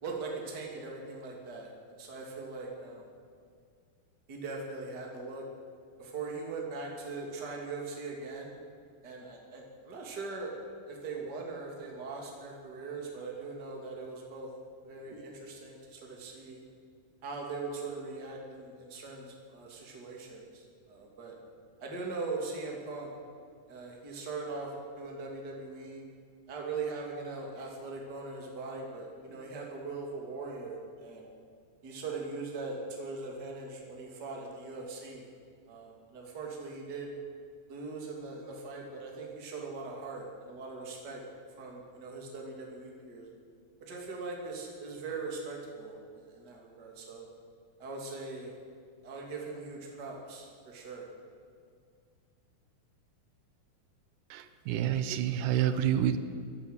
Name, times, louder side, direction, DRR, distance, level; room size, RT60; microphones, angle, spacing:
voice 1, 0.0-3.1 4.3-5.4 6.0-8.5 9.0-10.6 10.9-14.5 14.8-16.6 17.2-21.4 21.8-23.1 23.7-26.0 26.5-31.3 31.8-35.2 35.7-37.1 37.7-41.2 41.6-43.3 43.8-47.3 47.8-48.5 49.0-51.1, right 3 dB, 35° right, -1 dB, 2.8 m, -40 dB
voice 2, 54.3-56.2, right 10 dB, 90° right, 10 dB, 2.5 m, -28 dB
15.5 x 11.0 x 7.9 m, 2.2 s
omnidirectional pair, 3.7 m